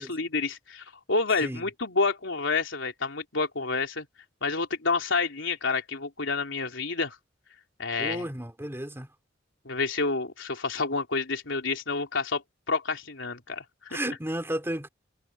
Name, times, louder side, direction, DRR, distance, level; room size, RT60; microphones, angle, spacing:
voice 1, 0.0-4.1 4.4-7.2 7.8-8.3 9.7-14.0, left 4 dB, 90° left, 3.6 m, -29 dB
voice 2, 8.0-9.1 13.9-14.9, right 1 dB, 15° right, 3.2 m, -33 dB
head